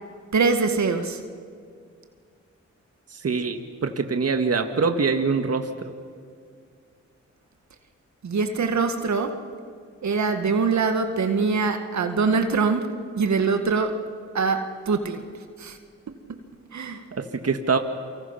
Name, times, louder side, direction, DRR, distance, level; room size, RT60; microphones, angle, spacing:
voice 1, 0.3-1.2 8.2-9.4 10.0-12.9 13.2-14.0 14.3-15.2 15.6-15.8 16.7-17.0, right 4 dB, 70° right, 6 dB, 1.9 m, -23 dB
voice 2, 3.1-5.9 17.1-17.8, right 4 dB, 55° right, 6 dB, 1.8 m, -24 dB
28.5 x 24.5 x 5.8 m, 2.2 s
cardioid pair, 50°, 29 cm